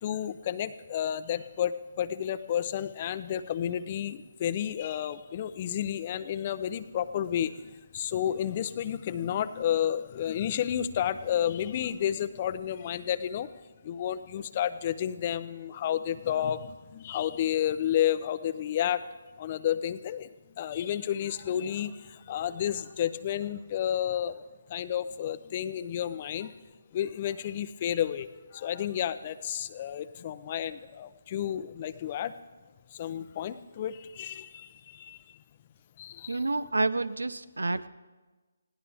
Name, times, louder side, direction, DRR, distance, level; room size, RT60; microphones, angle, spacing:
voice 1, 0.0-13.5 13.8-19.0 19.4-24.4 24.7-26.5 26.9-32.3 32.9-35.2 36.0-36.4, left 10 dB, 35° left, 14 dB, 0.6 m, -31 dB
voice 2, 36.3-37.9, right 3 dB, 90° right, 17 dB, 0.7 m, -29 dB
20.5 x 16.5 x 3.5 m, 1.3 s
figure-of-eight pair, 155°, 0 cm